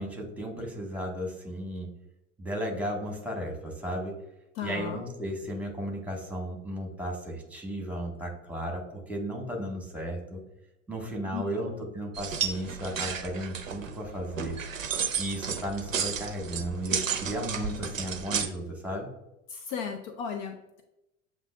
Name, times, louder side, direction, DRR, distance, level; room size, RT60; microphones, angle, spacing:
voice 1, 0.0-1.9 2.4-4.1 4.6-10.4 10.9-14.5 15.2-19.1, equal, 5° right, 0 dB, 1.3 m, -34 dB
voice 2, 4.6-5.0 11.3-11.8 19.5-20.8, left 7 dB, 50° left, 6 dB, 0.6 m, -36 dB
sound 1, 12.1-18.5, right 7 dB, 85° right, 0.6 m, -32 dB
7.8 x 2.7 x 2.2 m, 0.90 s
figure-of-eight pair, 70°, 38 cm